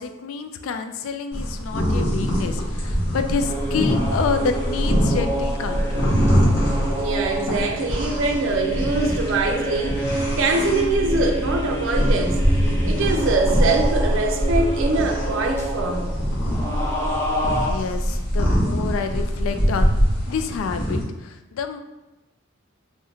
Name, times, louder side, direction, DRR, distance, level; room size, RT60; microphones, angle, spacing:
voice 1, 0.0-6.2 17.4-20.0 20.3-21.8, left 5 dB, 85° left, 8 dB, 0.3 m, -28 dB
sound 1, 1.3-21.0, equal, 55° left, 0.9 m, -23 dB
sound 2, 3.4-17.7, right 1 dB, 10° left, 0.4 m, -29 dB
voice 2, 6.9-12.4 12.8-16.1, right 3 dB, 70° right, 2 dB, 0.4 m, -23 dB
2.9 x 2.1 x 3.5 m, 1.0 s
head